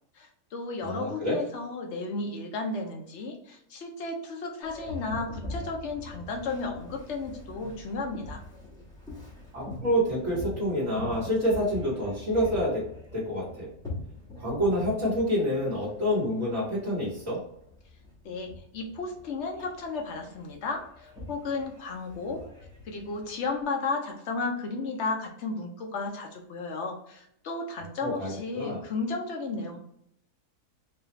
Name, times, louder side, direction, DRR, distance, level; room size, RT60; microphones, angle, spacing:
voice 1, 0.2-8.4 18.2-22.4 22.8-29.8, left 3 dB, 60° left, 2 dB, 0.8 m, -34 dB
voice 2, 0.8-1.4 9.5-12.8 13.1-13.7 14.4-17.4 28.0-28.8, equal, 55° right, -8 dB, 1.6 m, -27 dB
Boat Water vehicle, 4.6-23.6, left 2 dB, 5° left, 1.0 m, -43 dB
4.1 x 2.3 x 3.0 m, 0.73 s
omnidirectional pair, 1.7 m